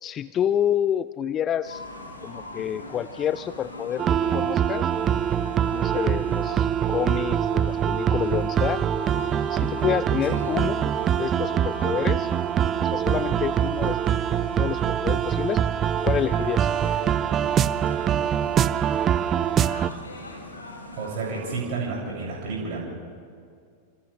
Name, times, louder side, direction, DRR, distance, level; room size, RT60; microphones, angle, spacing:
voice 1, 0.0-1.8 2.2-4.0 4.3-4.9 5.7-8.8 9.5-10.9 11.2-12.3 12.8-14.0 14.2-15.6 16.0-16.7, left 10 dB, 30° left, 16 dB, 0.4 m, -28 dB
sound 1, 1.6-21.6, left 2 dB, 80° left, 3.1 m, -41 dB
sound 2, 4.0-19.9, right 9 dB, 30° right, 0.6 m, -24 dB
voice 2, 21.0-22.8, right 4 dB, 50° right, -4 dB, 7.2 m, -30 dB
28.5 x 26.5 x 3.5 m, 2.2 s
figure-of-eight pair, 90°, 0 cm